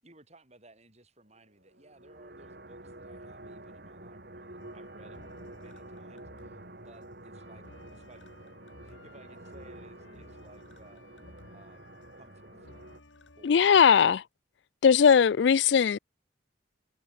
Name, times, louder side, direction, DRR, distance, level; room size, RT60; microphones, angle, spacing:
voice 1, 0.0-8.5 8.8-11.1 11.5-11.9 12.2-12.9 13.3-14.2, right 2 dB, 35° right, 7.4 m, -58 dB
sound 1, 1.6-13.0, right 1 dB, 55° right, 6.0 m, -48 dB
sound 2, 4.6-13.8, left 2 dB, 90° left, 2.8 m, -56 dB
voice 2, 13.4-14.2 14.8-16.0, left 7 dB, 70° left, 0.4 m, -19 dB
head